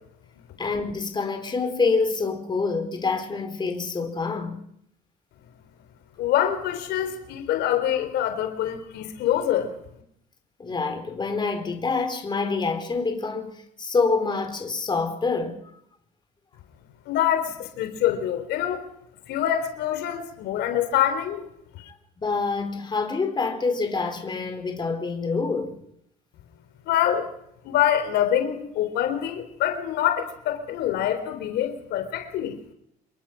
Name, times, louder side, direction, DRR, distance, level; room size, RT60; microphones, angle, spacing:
voice 1, 0.6-4.6 10.6-15.6 22.2-25.8, left 4 dB, 25° left, 4.6 m, -26 dB
voice 2, 6.2-9.7 17.1-18.8 19.3-21.5 21.8-21.9 26.9-27.3 27.6-32.6, left 10 dB, 85° left, 4.0 m, -25 dB
27.5 x 22.5 x 6.1 m
cardioid pair, 110°, 17 cm